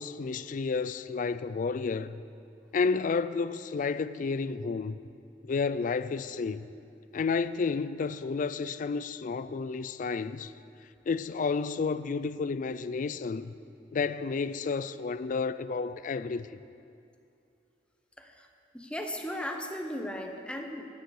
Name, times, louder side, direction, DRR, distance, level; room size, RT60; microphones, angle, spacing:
voice 1, 0.0-2.2 2.7-5.0 5.4-6.7 7.1-10.5 11.1-13.5 13.9-16.5, left 4 dB, 50° left, 0.4 m, -31 dB
voice 2, 18.2-18.5 18.7-20.8, left 1 dB, 5° left, 0.9 m, -36 dB
15.5 x 9.2 x 4.9 m
head